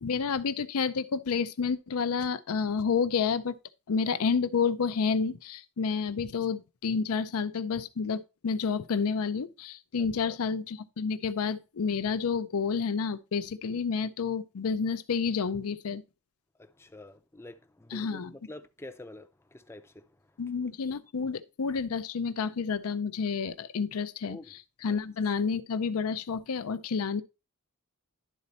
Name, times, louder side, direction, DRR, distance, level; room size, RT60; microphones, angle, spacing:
voice 1, 0.0-3.6 3.9-16.0 17.9-18.3 20.4-27.2, left 5 dB, 75° left, 0.5 m, -30 dB
voice 2, 16.6-18.2 18.5-19.9 24.3-24.4 24.9-25.0, left 2 dB, 10° left, 0.5 m, -47 dB
11.0 x 4.1 x 4.1 m
head